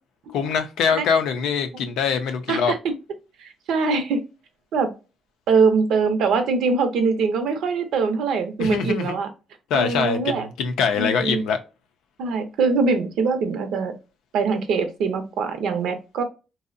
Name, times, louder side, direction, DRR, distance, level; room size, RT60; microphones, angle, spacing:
voice 1, 0.3-2.7 8.6-9.2 9.7-11.6, left 6 dB, 90° left, 0.5 m, -23 dB
voice 2, 3.4-4.2 4.7-4.9 5.5-9.3 9.7-10.5 11.0-11.4 12.2-13.9 14.3-16.2, right 4 dB, 80° right, 0.6 m, -22 dB
2.6 x 2.0 x 2.4 m
cardioid pair, 90°, 0 cm